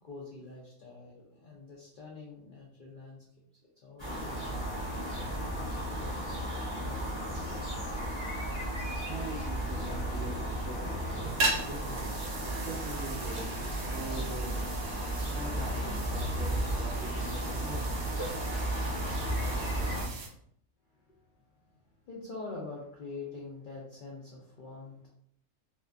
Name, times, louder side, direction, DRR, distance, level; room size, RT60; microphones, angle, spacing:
voice 1, 0.0-3.2 3.8-6.4 6.7-7.6 10.2-10.5 10.8-11.0 20.9-25.1, left 3 dB, 80° left, -3 dB, 0.4 m, -46 dB
sound 1, 4.0-20.0, right 1 dB, 25° left, 0.8 m, -34 dB
voice 2, 9.0-12.1 12.5-14.8 15.3-17.9, right 3 dB, 65° right, -4 dB, 0.7 m, -43 dB
sound 2, 11.2-20.3, right 2 dB, 80° right, 1.0 m, -38 dB
2.6 x 2.4 x 2.2 m, 0.70 s
omnidirectional pair, 1.5 m